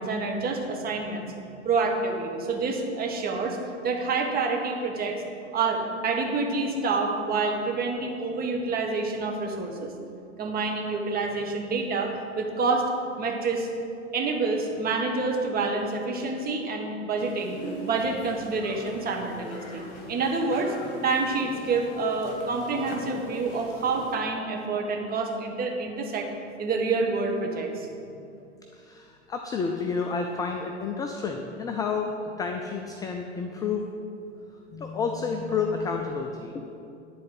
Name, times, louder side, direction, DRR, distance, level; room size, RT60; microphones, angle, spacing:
voice 1, 0.0-1.3 1.6-3.6 3.8-5.2 5.5-9.9 10.4-12.9 13.2-13.7 14.1-20.8 21.0-26.3 26.6-27.9, right 3 dB, 25° right, 1 dB, 1.3 m, -28 dB
sound 1, 17.2-24.2, left 1 dB, 45° left, 2.1 m, -41 dB
voice 2, 28.7-32.1 32.4-33.9 34.7-36.6, left 5 dB, 10° left, 3 dB, 0.3 m, -30 dB
10.0 x 4.2 x 7.5 m, 2.7 s
hypercardioid pair, 100°, 36 cm